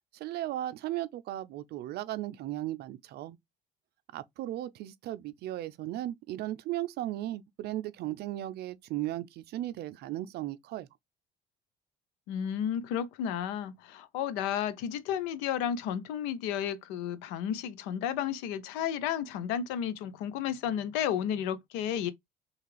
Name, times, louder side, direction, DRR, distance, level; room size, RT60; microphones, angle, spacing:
voice 1, 0.1-3.4 4.1-10.9, right 14 dB, 65° right, 0.4 m, -36 dB
voice 2, 12.3-22.1, left 9 dB, 85° left, 0.5 m, -32 dB
3.3 x 2.3 x 3.2 m
supercardioid pair, 70°, 18 cm